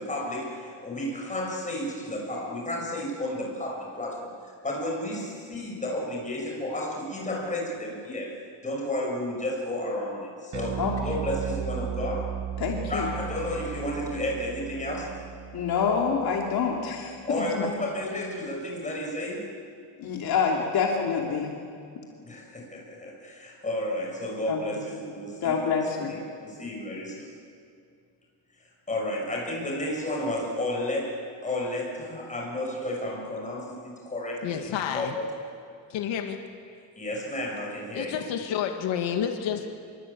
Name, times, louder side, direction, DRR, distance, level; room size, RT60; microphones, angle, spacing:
voice 1, 0.0-8.4 8.6-12.4 12.9-15.2 17.2-19.5 22.2-27.3 28.9-35.3 37.0-38.2, left 1 dB, 15° left, -1 dB, 6.9 m, -32 dB
Bass guitar, 10.5-17.0, right 9 dB, 40° right, 1.0 m, -36 dB
voice 2, 12.6-13.1 15.5-17.7 20.0-21.5 24.5-24.6 25.4-26.2, left 6 dB, 55° left, 0 dB, 2.9 m, -27 dB
voice 3, 34.4-35.1 35.9-36.4 37.9-39.7, left 8 dB, 90° left, 4 dB, 2.2 m, -29 dB
27.5 x 23.5 x 8.7 m, 2.3 s
cardioid pair, 160°, 44 cm